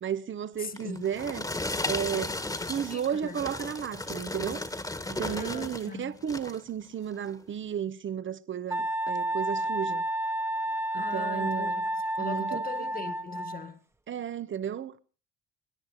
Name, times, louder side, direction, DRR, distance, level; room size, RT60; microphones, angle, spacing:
voice 1, 0.0-1.4 1.8-4.6 5.1-10.0 10.9-11.8 12.2-12.6 14.1-15.0, right 8 dB, 40° right, 1.1 m, -33 dB
voice 2, 0.6-1.1 2.9-3.4 5.2-6.2 10.9-11.9 12.2-13.8, left 4 dB, 30° left, 1.9 m, -40 dB
sound 1, 0.8-5.9 6.2-6.6 7.2-7.4, left 2 dB, 10° left, 1.7 m, -35 dB
Wind instrument woodwind instrument, 8.7-13.7, right 1 dB, 10° right, 1.1 m, -31 dB
27.5 x 10.5 x 5.0 m
cardioid pair, 110°, 29 cm